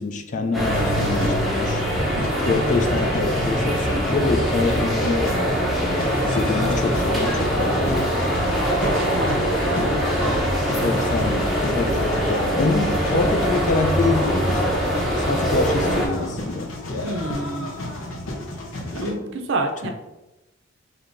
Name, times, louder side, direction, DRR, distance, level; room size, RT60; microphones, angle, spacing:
voice 1, 0.0-1.8 2.4-8.1 9.6-10.0 10.8-16.7 19.8-19.9, left 3 dB, 40° left, 4 dB, 0.4 m, -26 dB
sound 1, 0.5-16.1, equal, ahead, 0.8 m, -23 dB
sound 2, 0.7-19.1, left 1 dB, 85° left, 0.8 m, -32 dB
voice 2, 8.8-9.4 9.7-9.8 17.0-17.8 18.9-19.9, right 2 dB, 65° right, 5 dB, 0.5 m, -29 dB
5.1 x 2.8 x 2.6 m, 1.0 s
head